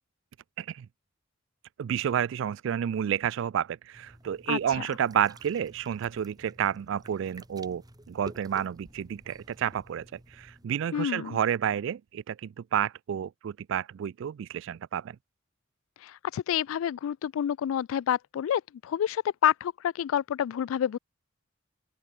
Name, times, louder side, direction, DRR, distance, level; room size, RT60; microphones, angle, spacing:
voice 1, 0.6-0.9 1.8-15.2, right 9 dB, 65° right, 0.3 m, -30 dB
sound 1, 3.9-10.6, right 1 dB, 20° right, 4.6 m, -51 dB
voice 2, 10.9-11.4 16.0-21.0, left 9 dB, 80° left, 0.3 m, -28 dB
open air
head